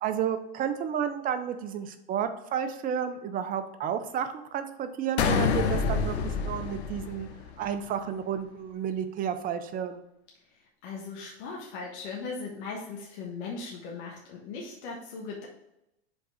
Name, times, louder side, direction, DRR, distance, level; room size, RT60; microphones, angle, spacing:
voice 1, 0.0-7.3 7.6-10.0, right 8 dB, 25° right, 9 dB, 0.5 m, -31 dB
sound 1, 5.2-7.7, left 5 dB, 75° left, 0.8 m, -27 dB
voice 2, 10.8-15.5, left 4 dB, 55° left, -2 dB, 1.3 m, -38 dB
5.3 x 3.8 x 4.8 m, 0.87 s
hypercardioid pair, 120°, 33 cm